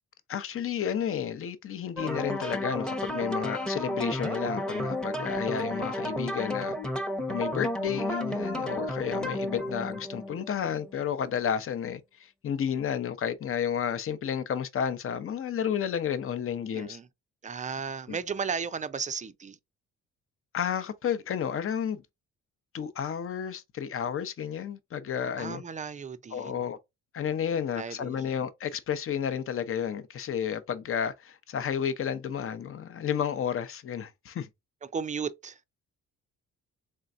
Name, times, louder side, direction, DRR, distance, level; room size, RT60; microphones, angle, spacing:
voice 1, 0.3-6.8 7.3-17.0 18.1-18.2 20.5-22.0 22.7-25.6 26.3-26.8 27.1-34.5, left 8 dB, 45° left, 0.7 m, -31 dB
sound 1, 2.0-11.0, left 1 dB, 5° left, 0.8 m, -32 dB
voice 2, 16.7-17.1 17.4-19.6 25.4-26.6 27.8-28.3 34.8-35.6, right 5 dB, 25° right, 0.4 m, -35 dB
3.8 x 3.4 x 2.5 m
cardioid pair, 90°, 30 cm